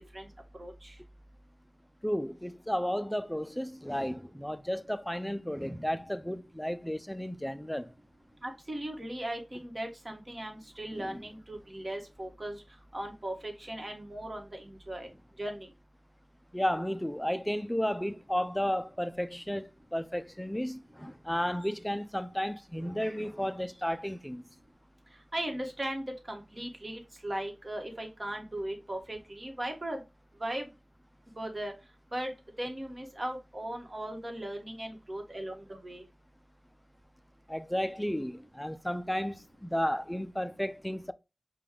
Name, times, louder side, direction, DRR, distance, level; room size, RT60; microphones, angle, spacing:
voice 1, 0.6-0.9 8.4-12.6 12.9-15.1 15.4-15.7 25.3-30.0 30.4-30.7 31.4-31.7 32.1-32.3 32.6-36.0, right 1 dB, 40° right, 1.2 m, -38 dB
voice 2, 2.0-7.9 10.9-11.2 16.5-24.4 37.5-41.1, equal, 10° left, 0.4 m, -33 dB
5.0 x 2.3 x 3.6 m
wide cardioid pair, 55°, 0 cm